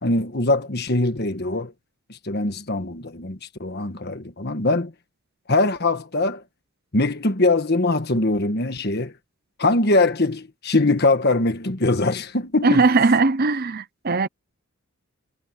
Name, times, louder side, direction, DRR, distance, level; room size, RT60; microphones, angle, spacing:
voice 1, 0.0-1.7 2.1-4.9 5.5-6.4 6.9-9.1 9.6-12.8, left 2 dB, 50° left, 1.5 m, -22 dB
voice 2, 12.6-14.3, right 3 dB, 45° right, 0.7 m, -19 dB
head